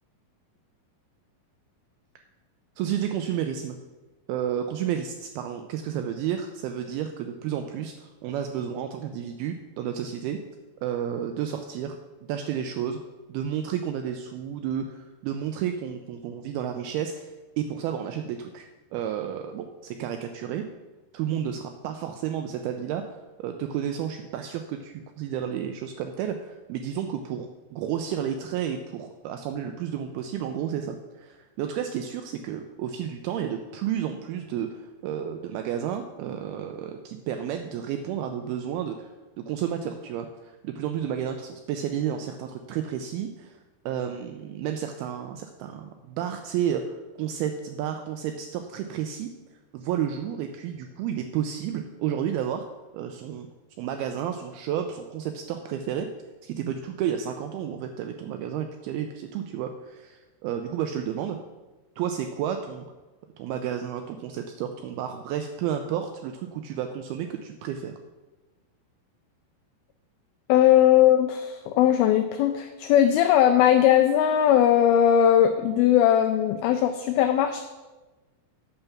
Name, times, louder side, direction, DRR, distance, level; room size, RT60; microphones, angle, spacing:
voice 1, 2.8-3.8 4.3-10.4 10.8-12.0 12.3-13.0 13.3-17.3 17.6-20.6 21.1-39.1 39.5-43.6 43.9-49.3 49.7-52.7 52.9-53.5 53.8-56.1 56.4-61.4 62.0-62.9 63.4-67.9, right 9 dB, 85° right, 6 dB, 2.2 m, -31 dB
voice 2, 70.5-77.6, left 10 dB, 90° left, 8 dB, 2.1 m, -19 dB
8.8 x 6.9 x 5.8 m, 1.2 s
omnidirectional pair, 4.9 m